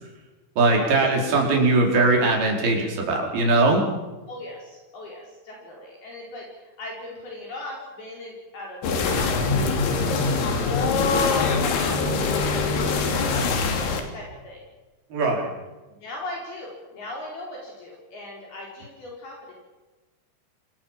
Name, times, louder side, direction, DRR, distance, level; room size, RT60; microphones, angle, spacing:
voice 1, 0.6-3.8 15.1-15.5, right 2 dB, 55° right, 0 dB, 6.4 m, -20 dB
voice 2, 4.3-8.8 9.2-10.5 11.1-13.6 14.1-14.6 16.0-19.5, left 1 dB, 55° left, -2 dB, 6.5 m, -39 dB
sound 1, 8.8-14.0, left 4 dB, 80° left, 5.4 m, -23 dB
27.5 x 20.5 x 7.5 m, 1.2 s
omnidirectional pair, 5.2 m